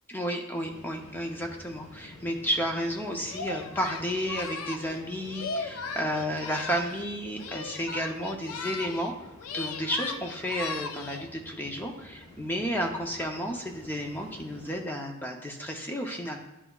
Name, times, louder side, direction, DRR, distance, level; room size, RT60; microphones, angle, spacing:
voice 1, 0.1-9.1 9.5-16.4, equal, 10° left, 2 dB, 0.6 m, -32 dB
sound 1, 0.6-14.8, left 1 dB, 30° left, 1.2 m, -50 dB
Singing, 3.3-7.1 7.4-9.1 9.4-11.3, left 4 dB, 75° left, 0.4 m, -37 dB
11.0 x 4.0 x 2.3 m, 0.92 s
head